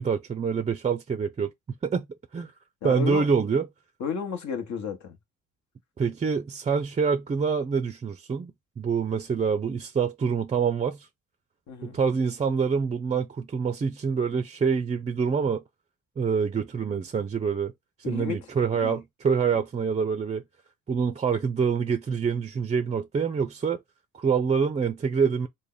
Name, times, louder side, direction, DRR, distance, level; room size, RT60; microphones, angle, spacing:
voice 1, 0.0-1.5 1.8-2.1 2.3-2.5 2.8-3.7 6.0-8.5 8.8-11.1 11.8-15.6 16.2-17.7 18.1-20.4 20.9-23.8 24.1-25.5, right 6 dB, 25° right, 0.4 m, -26 dB
voice 2, 2.8-3.3 4.0-5.2 11.7-12.0 18.0-18.4 18.8-19.0, left 6 dB, 65° left, 1.1 m, -32 dB
3.4 x 2.2 x 3.8 m
cardioid pair, 90°, 30 cm